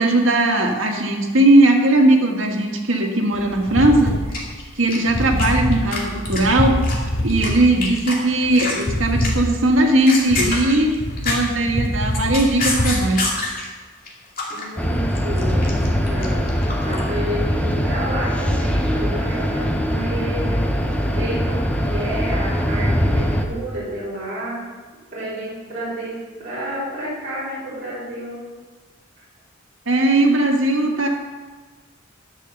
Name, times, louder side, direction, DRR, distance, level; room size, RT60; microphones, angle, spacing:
voice 1, 0.0-4.2 4.8-6.8 7.2-11.0 11.2-13.3 29.9-31.1, right 1 dB, 85° right, 2 dB, 1.7 m, -18 dB
sound 1, 3.3-12.9, equal, 65° left, 3.2 m, -24 dB
sound 2, 4.3-5.5 5.7-6.0 6.2-7.5 7.8-8.1 8.4-8.8 9.2-9.5 9.9-11.6 12.0-13.7 14.1-14.6 14.9-17.0, left 3 dB, 45° left, 2.3 m, -26 dB
voice 2, 14.5-16.5 16.8-20.7 21.0-24.6 25.1-28.5, right 1 dB, 40° right, -10 dB, 4.0 m, -30 dB
sound 3, 14.8-23.5, equal, 5° left, 1.0 m, -22 dB
11.0 x 6.5 x 6.9 m, 1.4 s
head